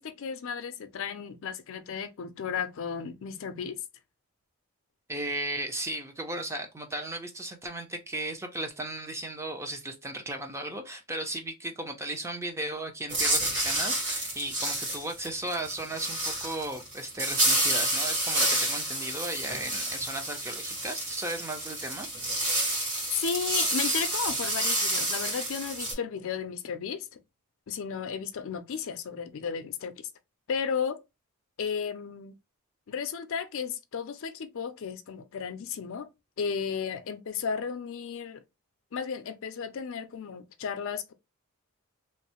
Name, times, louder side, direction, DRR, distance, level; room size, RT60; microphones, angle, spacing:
voice 1, 0.0-3.8 23.1-27.2 27.7-30.1 30.5-31.0 31.6-32.3 32.9-36.1 36.4-38.4 38.9-41.1, left 6 dB, 60° left, 0.4 m, -34 dB
voice 2, 5.1-22.4, right 1 dB, 10° right, 0.4 m, -36 dB
sound 1, 13.1-25.9, right 1 dB, 70° right, 1.8 m, -29 dB
3.1 x 2.0 x 2.8 m
head